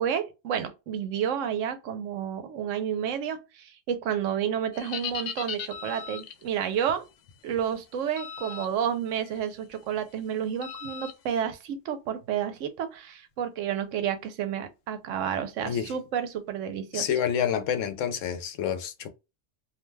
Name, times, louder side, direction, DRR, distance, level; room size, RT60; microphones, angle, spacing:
voice 1, 0.0-7.1 7.4-17.1, right 8 dB, 85° right, 1.0 m, -30 dB
sound 1, 4.7-6.4 8.2-8.7 9.1-9.4 10.6-11.1, left 7 dB, 60° left, 0.6 m, -37 dB
voice 2, 16.9-19.1, left 8 dB, 80° left, 0.9 m, -28 dB
2.6 x 2.2 x 3.1 m
omnidirectional pair, 1.3 m